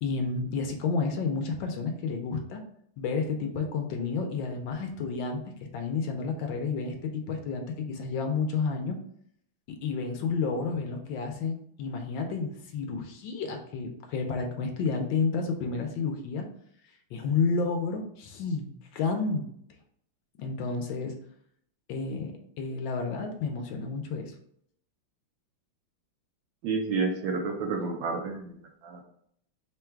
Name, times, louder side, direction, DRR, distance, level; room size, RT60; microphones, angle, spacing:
voice 1, 0.0-2.6 3.0-9.0 9.8-16.4 17.1-19.4 20.4-21.2 21.9-24.3, left 4 dB, 75° left, 4 dB, 1.3 m, -31 dB
voice 2, 26.6-29.0, right 4 dB, 70° right, 2 dB, 1.2 m, -30 dB
3.7 x 2.2 x 4.4 m, 0.68 s
omnidirectional pair, 2.3 m